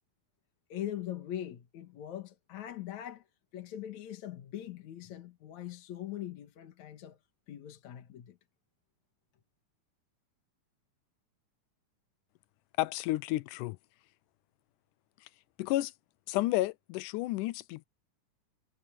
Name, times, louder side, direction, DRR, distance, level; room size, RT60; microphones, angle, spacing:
voice 1, 0.7-3.3 3.5-7.2 7.5-8.4, left 11 dB, 70° left, 2.7 m, -41 dB
voice 2, 12.8-13.8 15.6-15.9 16.3-17.9, left 17 dB, 90° left, 2.1 m, -31 dB
omnidirectional pair, 3.6 m